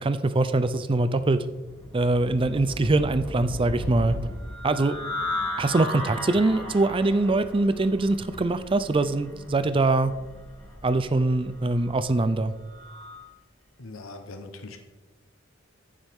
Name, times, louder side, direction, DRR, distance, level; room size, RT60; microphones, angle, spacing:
voice 1, 0.0-1.4 1.9-4.2 4.6-5.0 5.6-10.1 10.8-12.5, right 2 dB, 25° right, 12 dB, 0.4 m, -23 dB
sound 1, 1.4-13.3, left 1 dB, 10° left, 3.3 m, -36 dB
voice 2, 13.8-14.8, left 2 dB, 90° left, 6 dB, 1.0 m, -41 dB
15.0 x 7.3 x 3.6 m, 1.2 s
head